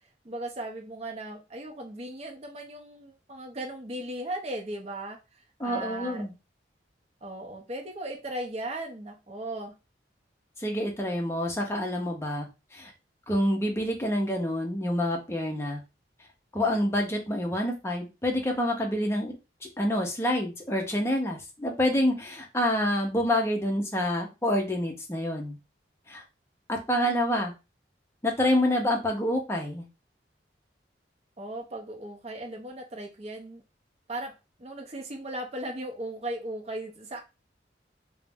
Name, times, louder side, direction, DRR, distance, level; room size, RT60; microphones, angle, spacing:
voice 1, 0.2-5.2 5.6-6.2 7.2-9.7 31.4-33.6 34.1-34.3 34.6-37.2, right 1 dB, 35° right, 2 dB, 0.6 m, -37 dB
voice 2, 5.6-6.3 10.6-12.9 13.3-15.8 16.5-19.4 19.8-25.6 26.1-26.2 26.7-27.5 28.2-29.9, left 1 dB, 15° left, 1 dB, 0.5 m, -27 dB
2.4 x 2.0 x 3.4 m, 0.27 s
head